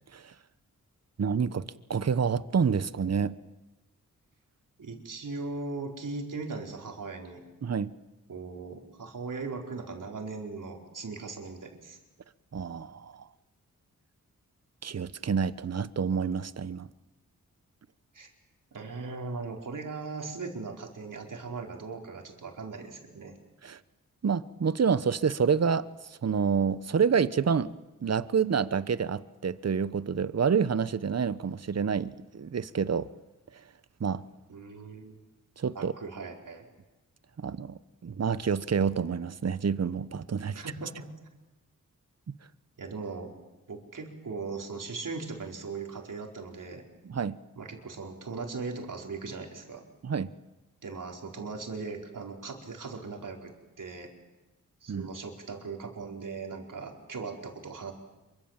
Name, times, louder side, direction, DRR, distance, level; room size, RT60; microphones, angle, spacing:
voice 1, 1.2-1.6 1.9-3.3 7.6-7.9 12.5-13.3 14.8-16.9 23.6-23.8 24.2-25.9 26.2-27.7 28.0-33.1 34.0-34.2 35.6-35.9 37.4-37.7 38.0-40.6 47.0-47.4 50.0-50.3 54.9-55.1, right 6 dB, 50° right, 15 dB, 1.0 m, -28 dB
voice 2, 4.8-7.4 8.3-12.0 18.1-18.3 18.7-23.4 34.5-35.2 35.7-36.6 40.5-41.1 42.8-43.3 43.7-46.8 47.6-49.9 50.8-54.1 54.8-57.9, right 4 dB, 70° right, 1 dB, 4.7 m, -39 dB
27.0 x 24.0 x 7.5 m, 1.1 s
cardioid pair, 60°, 33 cm